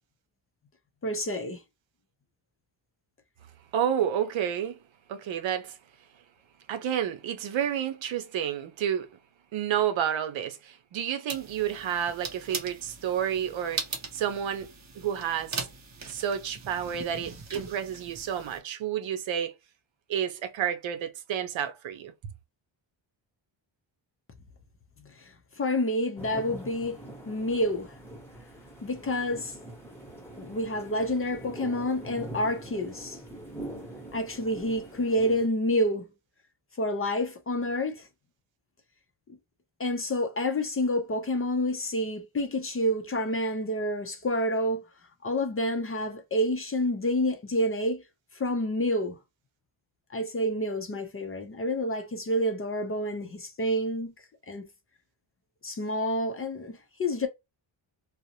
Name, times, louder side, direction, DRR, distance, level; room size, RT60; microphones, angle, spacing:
voice 1, 1.0-1.6 25.0-27.0 27.3-27.9 28.8-29.6 30.4-33.2 34.1-36.1 36.8-38.1 39.8-44.8 45.2-48.0 48.3-49.2 50.1-54.1 54.5-54.7 55.6-57.3, left 1 dB, 30° left, 0.4 m, -28 dB
voice 2, 3.7-4.8 5.1-5.8 6.7-9.1 9.5-13.9 14.1-14.7 14.9-15.7 16.1-19.5 20.1-22.1, right 9 dB, 75° right, 0.7 m, -30 dB
sound 1, 11.3-18.6, right 5 dB, 35° right, 0.7 m, -40 dB
sound 2, 26.2-35.5, right 1 dB, 5° left, 0.9 m, -43 dB
2.5 x 2.0 x 2.7 m
wide cardioid pair, 130°, 47 cm